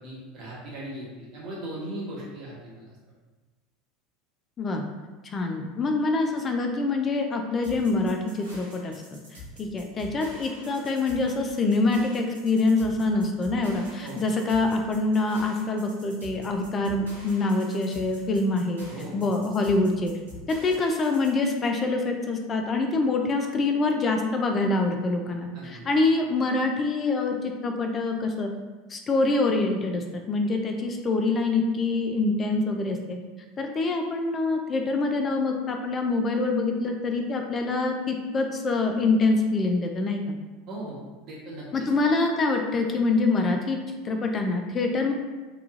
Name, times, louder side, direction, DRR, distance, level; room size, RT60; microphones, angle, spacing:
voice 1, 0.0-3.0 14.0-14.2 18.9-19.1 25.5-25.8 40.7-41.9, right 1 dB, 50° right, -6 dB, 1.1 m, -38 dB
voice 2, 5.2-18.8 19.1-20.1 20.5-28.5 28.9-33.2 33.6-40.2 41.7-43.8 44.0-45.1, left 3 dB, 30° left, 4 dB, 0.3 m, -25 dB
sound 1, 7.6-21.3, equal, 85° right, 0.8 m, -46 dB
2.9 x 2.3 x 2.4 m, 1.3 s
hypercardioid pair, 80°, 0 cm